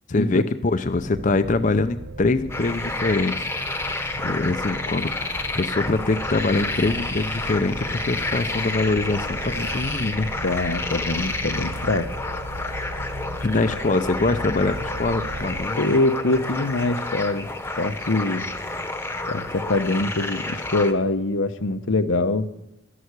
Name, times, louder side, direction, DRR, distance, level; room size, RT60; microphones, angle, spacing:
voice 1, 0.1-3.5 4.2-10.3 13.4-15.9, left 3 dB, 40° left, 9 dB, 0.6 m, -24 dB
sound 1, 0.9-15.7, right 1 dB, 60° right, 1.1 m, -36 dB
sound 2, 2.5-20.9, left 2 dB, 10° left, 1.0 m, -30 dB
voice 2, 10.4-12.1 15.8-17.5 17.8-18.5 19.3-22.5, left 2 dB, 80° left, 10 dB, 0.9 m, -23 dB
12.5 x 11.0 x 8.1 m, 0.93 s
head